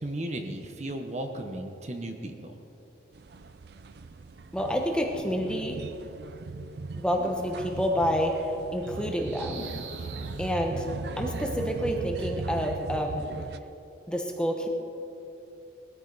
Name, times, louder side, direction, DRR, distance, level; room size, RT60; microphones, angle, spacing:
voice 1, 0.0-2.5, right 1 dB, 35° right, 5 dB, 0.9 m, -35 dB
sound 1, 3.1-13.6, right 3 dB, 55° right, 0.5 m, -38 dB
voice 2, 4.5-5.8 7.0-8.4 8.7-9.7 10.4-10.9 11.2-13.3 14.1-14.7, equal, 5° left, 1 dB, 1.1 m, -28 dB
sound 2, 9.0-11.8, right 3 dB, 80° right, 1.4 m, -44 dB
20.5 x 13.5 x 4.1 m, 2.9 s
head